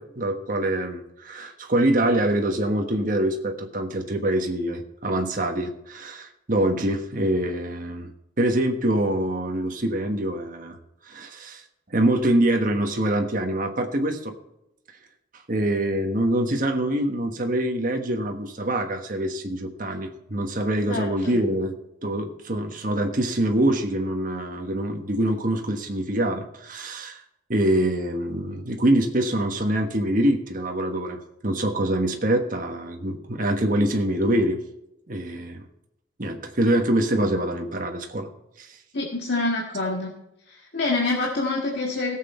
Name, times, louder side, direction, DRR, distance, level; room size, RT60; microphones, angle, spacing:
voice 1, 0.0-8.1 8.4-10.8 11.1-11.6 11.9-14.3 15.5-21.7 22.0-27.2 27.5-34.6 35.1-35.6 36.2-38.3 38.6-38.7, right 1 dB, 45° right, 4 dB, 1.3 m, -25 dB
voice 2, 20.9-21.4 38.9-40.1 40.5-42.2, left 2 dB, 55° left, -2 dB, 1.8 m, -26 dB
17.0 x 7.7 x 4.4 m, 0.84 s
head